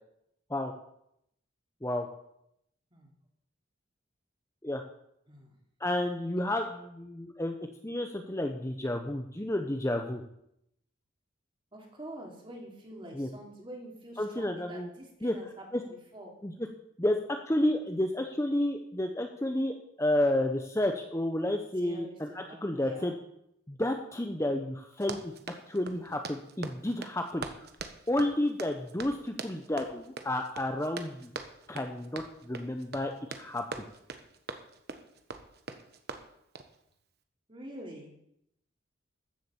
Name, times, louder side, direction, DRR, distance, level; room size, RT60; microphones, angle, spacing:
voice 1, 5.8-7.5 7.8-10.2 13.1-13.3 14.2-14.9 15.2-15.3 15.7-15.8 16.4-16.5 17.0-23.1 23.7-25.3 25.7-27.7 28.1-31.3 31.7-33.1 33.4-33.8, left 1 dB, 15° left, 4 dB, 0.8 m, -31 dB
voice 2, 11.7-16.3 21.8-23.2 37.5-38.2, right 1 dB, 25° right, 0 dB, 3.0 m, -46 dB
Run, 24.9-36.8, right 4 dB, 55° right, 1.2 m, -43 dB
14.0 x 7.6 x 7.1 m, 0.77 s
head